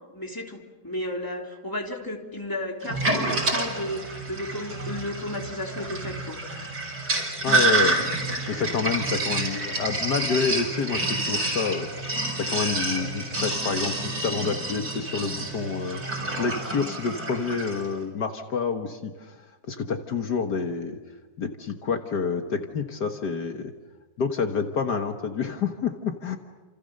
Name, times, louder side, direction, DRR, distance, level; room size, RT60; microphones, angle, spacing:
voice 1, 0.1-6.4, left 1 dB, 10° left, 1 dB, 3.4 m, -33 dB
Sink (filling or washing), 2.8-17.9, right 2 dB, 65° right, 5.9 m, -28 dB
voice 2, 7.4-8.0 8.5-11.9 12.4-19.4 19.7-21.0 21.4-23.7 24.2-26.4, left 5 dB, 70° left, 5 dB, 2.0 m, -28 dB
30.0 x 28.0 x 6.6 m, 1.2 s
omnidirectional pair, 1.9 m